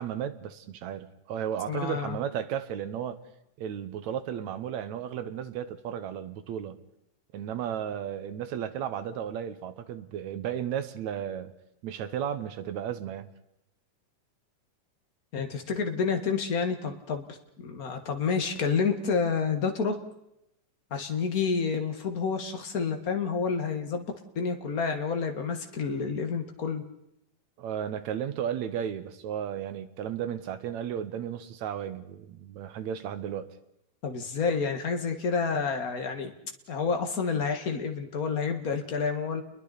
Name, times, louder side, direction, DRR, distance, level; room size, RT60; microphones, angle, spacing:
voice 1, 0.0-3.2 3.6-6.8 7.3-11.5 11.8-13.3 27.6-33.5, right 9 dB, 70° right, 10 dB, 2.2 m, -34 dB
voice 2, 1.7-2.2 15.3-17.4 17.6-20.0 20.9-24.1 24.3-26.8 34.0-36.3 36.7-39.4, left 5 dB, 40° left, 5 dB, 1.3 m, -29 dB
30.0 x 22.0 x 4.1 m, 0.81 s
omnidirectional pair, 3.7 m